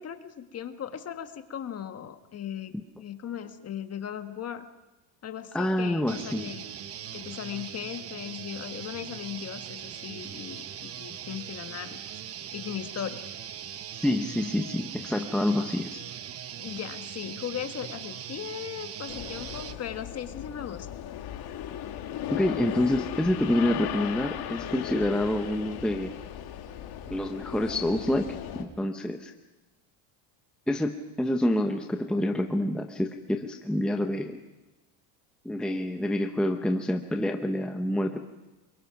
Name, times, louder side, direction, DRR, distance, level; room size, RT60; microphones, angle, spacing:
voice 1, 0.0-4.7 5.2-6.7 7.1-12.0 12.5-13.3 16.6-20.9, left 9 dB, 30° left, 8 dB, 1.5 m, -38 dB
voice 2, 5.5-6.5 14.0-16.0 22.3-26.1 27.1-29.3 30.7-34.4 35.4-38.2, left 1 dB, ahead, 5 dB, 0.9 m, -27 dB
sound 1, 6.1-19.8, right 9 dB, 30° right, 0.9 m, -40 dB
sound 2, 19.1-28.6, left 10 dB, 50° left, 2.4 m, -37 dB
29.0 x 22.5 x 5.9 m, 1.1 s
cardioid pair, 140°, 50 cm